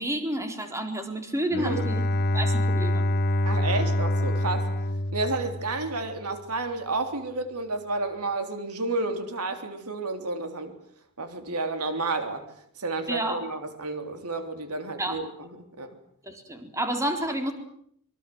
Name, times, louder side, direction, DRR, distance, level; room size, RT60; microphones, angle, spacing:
voice 1, 0.0-2.1 2.3-3.0 13.1-13.4 15.0-15.2 16.2-17.5, right 1 dB, 15° right, 5 dB, 4.1 m, -30 dB
Bowed string instrument, 1.5-6.2, left 1 dB, 45° left, 1.3 m, -26 dB
voice 2, 1.6-1.9 3.5-4.7 5.1-10.7 11.2-12.5 12.8-15.5 15.8-16.0, right 3 dB, 90° right, 7 dB, 3.6 m, -31 dB
26.0 x 23.5 x 8.0 m, 0.67 s
head